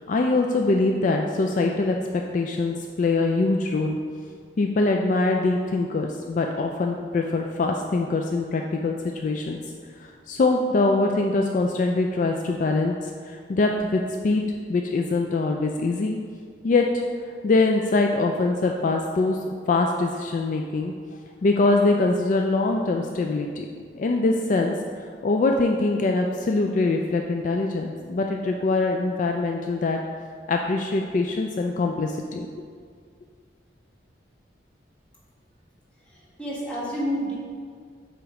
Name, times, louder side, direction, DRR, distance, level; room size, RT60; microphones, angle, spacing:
voice 1, 0.0-4.0 4.6-9.6 10.0-14.4 14.7-16.2 16.6-17.0 17.4-19.4 19.7-20.9 21.4-23.7 23.9-30.0 30.5-32.5, left 3 dB, 45° left, 2 dB, 0.3 m, -23 dB
voice 2, 36.1-37.4, equal, 5° left, -7 dB, 1.3 m, -29 dB
8.0 x 3.0 x 4.7 m, 2.1 s
head